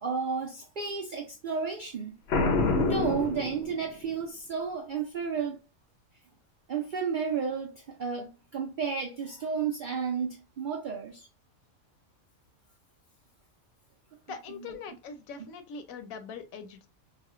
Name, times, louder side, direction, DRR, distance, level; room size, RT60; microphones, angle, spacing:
voice 1, 0.0-2.2 2.8-5.6 6.7-11.3 14.5-14.7 15.4-15.5, right 6 dB, 70° right, 0.4 m, -32 dB
Boom, 2.3-4.1, left 3 dB, 60° left, 0.7 m, -27 dB
voice 2, 14.3-16.9, left 5 dB, 80° left, 1.0 m, -42 dB
4.1 x 2.1 x 2.3 m
omnidirectional pair, 1.4 m